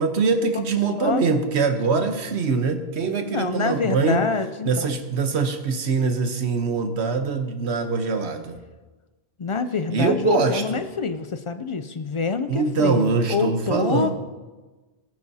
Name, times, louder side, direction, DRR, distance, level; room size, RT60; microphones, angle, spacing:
voice 1, 0.0-4.2 4.6-8.6 9.9-10.8 12.5-14.1, right 4 dB, 90° right, 7 dB, 1.2 m, -23 dB
voice 2, 0.9-1.4 3.2-4.9 9.4-14.1, left 5 dB, 55° left, 10 dB, 0.3 m, -26 dB
16.5 x 9.2 x 2.7 m, 1.2 s
omnidirectional pair, 1.1 m